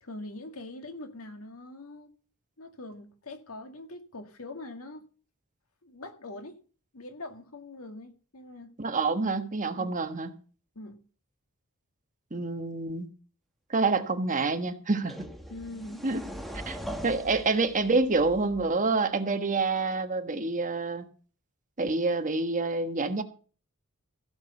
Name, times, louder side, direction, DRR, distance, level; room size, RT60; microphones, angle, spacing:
voice 1, 0.0-2.1 2.6-5.1 5.8-6.6 6.9-8.8 9.8-10.0 10.8-11.0 15.5-16.0, left 2 dB, 70° left, 2.0 m, -43 dB
voice 2, 8.8-10.3 12.3-13.1 13.7-15.2 16.0-16.2 16.7-16.8 17.0-21.1 21.8-23.2, right 3 dB, 35° right, 1.3 m, -27 dB
sound 1, 14.3-14.4 15.1-18.9, equal, ahead, 1.5 m, -41 dB
15.5 x 6.2 x 6.9 m
head